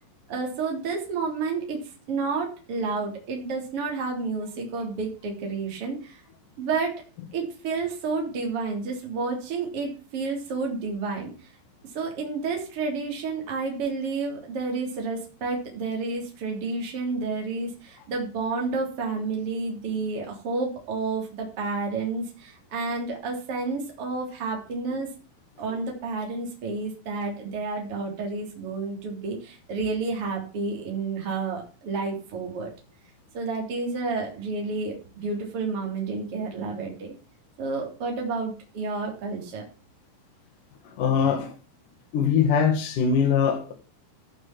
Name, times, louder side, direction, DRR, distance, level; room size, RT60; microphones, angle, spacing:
voice 1, 0.3-6.2 6.6-7.0 7.3-11.3 11.9-25.1 25.6-32.7 33.3-37.1 37.6-39.6, right 4 dB, 35° right, 0 dB, 3.7 m, -30 dB
voice 2, 40.8-41.5 42.1-43.7, left 7 dB, 55° left, 5 dB, 2.6 m, -22 dB
15.0 x 6.2 x 6.0 m, 0.37 s
omnidirectional pair, 5.4 m